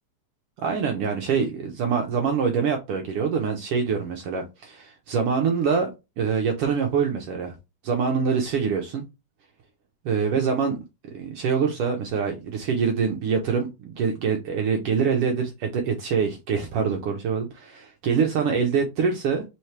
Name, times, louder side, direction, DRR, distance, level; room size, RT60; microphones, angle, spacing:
voice 1, 0.6-5.9 6.2-7.6 7.8-9.0 10.0-10.8 11.1-19.4, right 6 dB, 80° right, 1.3 m, -25 dB
4.5 x 3.2 x 3.1 m
omnidirectional pair, 3.4 m